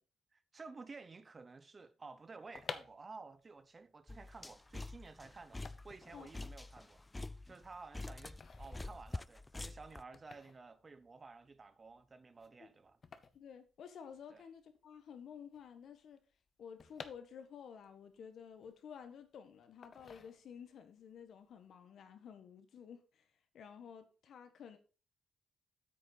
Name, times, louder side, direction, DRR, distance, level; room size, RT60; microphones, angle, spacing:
voice 1, 0.3-7.0 7.5-13.0 14.3-14.4, right 4 dB, 30° right, 0.7 m, -53 dB
sound 1, 2.3-14.4 14.7-14.8 15.0-17.8 18.2-19.3 19.8-20.8 21.2-21.5, left 5 dB, 45° left, 0.8 m, -53 dB
sound 2, 4.1-10.0, left 2 dB, 15° left, 0.3 m, -46 dB
voice 2, 6.1-6.5 12.6-12.7 13.3-16.2 16.6-23.3 23.5-24.8, left 7 dB, 70° left, 1.4 m, -52 dB
8.5 x 6.6 x 4.1 m
cardioid pair, 105°, 0 cm